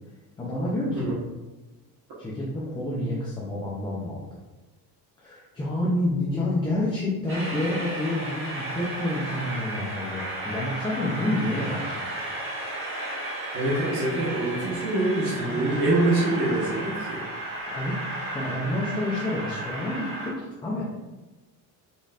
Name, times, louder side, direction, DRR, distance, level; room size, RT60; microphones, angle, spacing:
voice 1, 0.4-1.1 2.2-4.3 5.2-12.2 15.4-15.7 17.7-21.0, left 1 dB, 10° left, -6 dB, 0.5 m, -29 dB
Train, 7.3-20.3, right 1 dB, 30° right, 1.4 m, -33 dB
voice 2, 13.5-17.2, right 2 dB, 60° right, -7 dB, 1.4 m, -25 dB
5.3 x 4.0 x 2.5 m, 1.2 s
cardioid pair, 165°, 41 cm